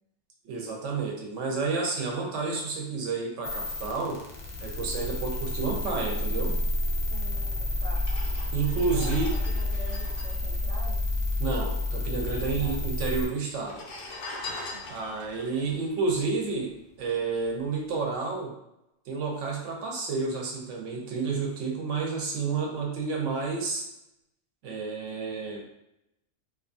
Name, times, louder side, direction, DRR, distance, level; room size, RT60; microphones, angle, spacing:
voice 1, 0.4-4.2 4.6-6.5 8.5-9.4 11.4-13.8 14.9-16.7 17.0-18.5 19.1-23.8 24.6-25.8, right 4 dB, 85° right, 0 dB, 1.0 m, -30 dB
sound 1, 3.4-13.3, left 1 dB, 55° left, 0.5 m, -30 dB
voice 2, 7.1-8.0 8.7-11.0 12.6-12.8 14.7-15.0, right 2 dB, 65° right, -5 dB, 0.3 m, -45 dB
sound 2, 8.0-11.6 11.8-11.9 12.1-12.8 13.5-17.0 17.4-17.7, left 2 dB, 90° left, 0.9 m, -42 dB
2.5 x 2.4 x 2.5 m, 0.84 s
omnidirectional pair, 1.2 m